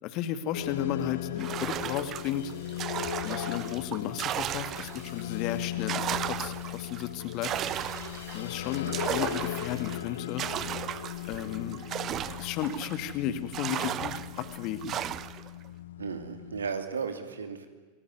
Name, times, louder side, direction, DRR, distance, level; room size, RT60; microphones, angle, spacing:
voice 1, 0.0-2.5 3.2-7.5 8.3-10.4 11.3-11.8 12.2-15.0, left 10 dB, 40° left, 11 dB, 2.3 m, -34 dB
sound 1, 0.5-16.7, left 13 dB, 60° left, 1.0 m, -38 dB
sound 2, 1.4-5.2 5.6-13.1 13.5-15.5, right 11 dB, 30° right, 1.0 m, -35 dB
voice 2, 16.0-17.7, right 5 dB, 70° right, 8 dB, 2.9 m, -34 dB
28.5 x 21.0 x 9.7 m, 1.3 s
figure-of-eight pair, 90°, 0 cm